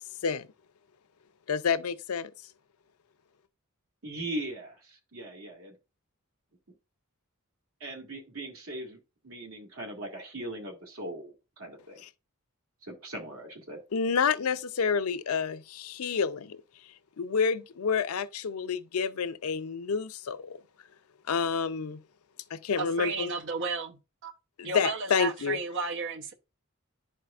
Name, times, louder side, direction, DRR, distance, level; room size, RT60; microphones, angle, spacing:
voice 1, 1.5-2.3 12.0-12.1 13.9-16.6 17.2-20.6 21.3-22.0 22.5-23.3 24.6-25.6, left 6 dB, 90° left, 0.5 m, -29 dB
voice 2, 4.0-5.7 7.8-9.0 9.2-12.0 12.8-13.8, right 1 dB, 80° right, 2.0 m, -39 dB
voice 3, 22.8-24.0 24.2-24.3 24.6-26.3, right 4 dB, 60° right, 0.8 m, -33 dB
11.0 x 4.5 x 2.4 m
head